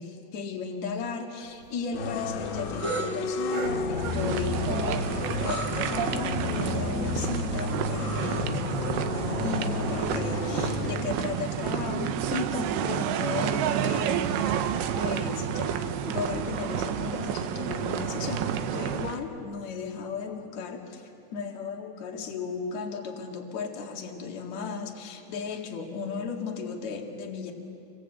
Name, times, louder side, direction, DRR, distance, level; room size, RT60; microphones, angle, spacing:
voice 1, 0.0-27.5, left 5 dB, 50° left, 2 dB, 2.6 m, -35 dB
sound 1, 1.4-4.8 5.1-7.1 7.4-7.5 7.8-7.9 8.3-8.4 9.0-9.3 10.1-10.2, right 2 dB, 60° right, 5.2 m, -38 dB
sound 2, 1.9-10.9, left 4 dB, 65° left, 3.7 m, -31 dB
sound 3, 4.0-19.2, right 9 dB, 85° right, 2.3 m, -30 dB
29.0 x 25.0 x 8.1 m, 2.8 s
omnidirectional pair, 5.7 m